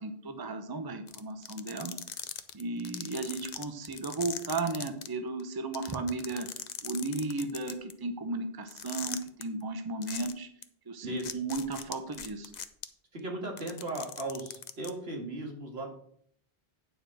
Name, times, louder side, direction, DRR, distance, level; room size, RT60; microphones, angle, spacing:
voice 1, 0.0-1.9 2.5-6.5 6.8-10.5 10.9-12.5, right 3 dB, 25° right, 7 dB, 0.8 m, -35 dB
sound 1, 1.1-5.1 5.4-5.5 5.7-7.9 8.7-9.4 10.0-10.3 10.6-10.7 11.2-12.8 13.5-14.9, left 7 dB, 50° left, 0.7 m, -39 dB
voice 2, 13.1-15.9, right 2 dB, 80° right, 1 dB, 2.2 m, -37 dB
9.2 x 4.9 x 6.3 m, 0.63 s
omnidirectional pair, 1.0 m